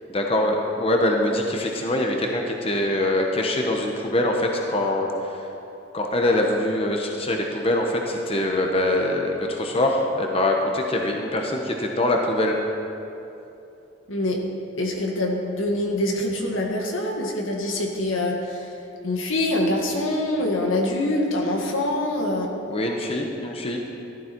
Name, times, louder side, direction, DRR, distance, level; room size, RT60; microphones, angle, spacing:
voice 1, 0.1-5.5 5.9-12.6 22.6-23.8, left 1 dB, 30° left, 1 dB, 1.0 m, -23 dB
voice 2, 14.1-14.4 14.8-22.5, left 1 dB, 85° left, 1 dB, 1.8 m, -25 dB
15.0 x 12.5 x 4.6 m, 2.9 s
head